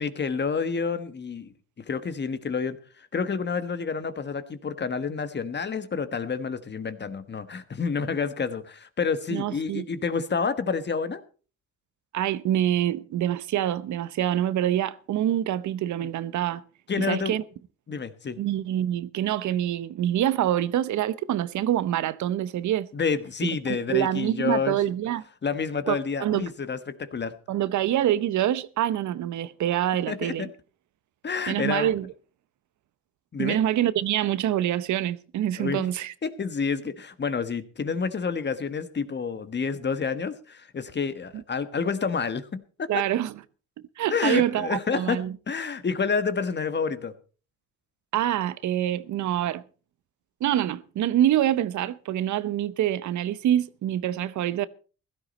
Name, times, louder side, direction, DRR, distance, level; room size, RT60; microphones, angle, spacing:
voice 1, 0.0-1.5 1.9-11.2 16.0-16.1 16.9-17.4 17.9-18.4 22.9-24.8 25.4-27.4 30.1-30.5 31.2-31.9 33.3-33.6 35.6-35.9 36.2-43.0 44.1-45.2 45.5-47.1, left 5 dB, 35° left, 1.4 m, -29 dB
voice 2, 9.3-9.8 12.1-16.6 17.0-17.4 18.4-22.9 23.4-25.2 25.9-26.5 27.5-30.5 31.5-32.1 33.4-36.1 42.9-43.3 44.0-45.3 48.1-49.6 50.4-54.7, right 12 dB, 70° right, 0.8 m, -26 dB
16.0 x 13.0 x 4.2 m
cardioid pair, 90°, 30 cm